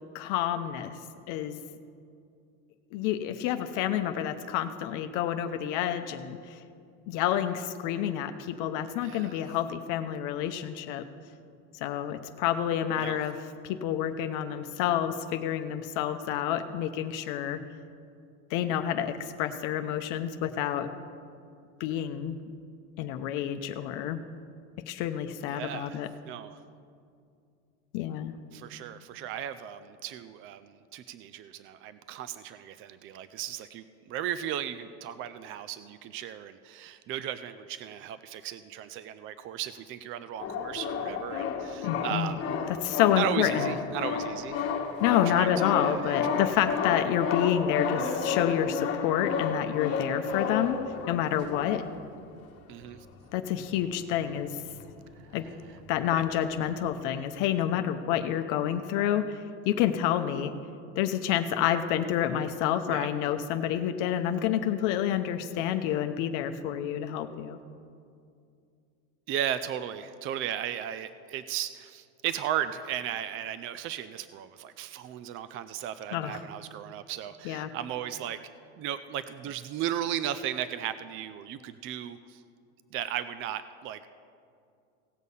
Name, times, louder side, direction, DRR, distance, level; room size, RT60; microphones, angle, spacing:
voice 1, 0.1-1.0 1.3-1.6 2.9-6.6 7.1-11.0 11.8-17.6 18.5-20.9 21.8-22.4 23.0-24.2 24.9-26.1 27.9-28.3 41.8-42.4 42.7-43.8 45.0-50.8 51.1-51.8 53.3-54.6 55.3-55.5 55.9-59.4 59.7-60.5 61.0-67.6 76.1-76.4 77.4-77.7, left 10 dB, 65° left, 8 dB, 0.7 m, -29 dB
voice 2, 9.0-9.4 13.0-13.2 25.5-26.0 26.2-26.6 28.5-30.6 30.9-33.8 34.1-42.5 43.2-44.7 45.1-46.4 48.0-48.6 52.7-53.0 56.1-56.2 62.9-63.1 69.3-78.4 78.8-82.2 82.9-84.1, right 10 dB, 40° right, 12 dB, 0.4 m, -36 dB
sound 1, 40.4-52.1 52.7-52.8 53.0-53.2 53.6-55.0 55.2-57.0, left 6 dB, 45° left, 1.3 m, -32 dB
17.0 x 6.4 x 5.5 m, 2.4 s
supercardioid pair, 120°, 34 cm